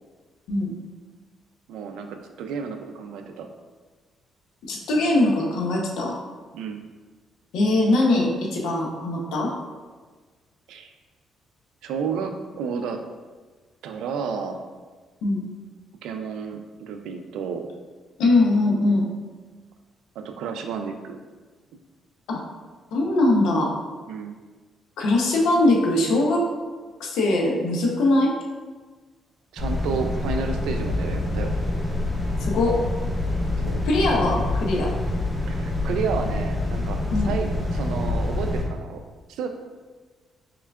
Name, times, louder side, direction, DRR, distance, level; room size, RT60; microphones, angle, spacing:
voice 1, 1.7-3.5 6.5-6.8 10.7-10.9 11.8-13.0 13.8-14.6 16.0-17.7 20.2-21.2 24.1-24.4 29.5-31.5 33.6-33.8 35.5-39.0 39.3-39.5, right 6 dB, 85° right, 5 dB, 0.3 m, -31 dB
voice 2, 4.6-6.2 7.5-9.5 15.2-15.5 18.2-19.1 22.3-22.4 22.9-23.8 25.0-26.5 27.0-28.3 32.4-32.8 33.8-34.9 37.1-37.3, left 2 dB, 85° left, -1 dB, 0.6 m, -21 dB
sound 1, 29.6-38.7, left 2 dB, 5° left, 0.8 m, -26 dB
3.6 x 3.3 x 2.3 m, 1.4 s
cardioid pair, 90°, 0 cm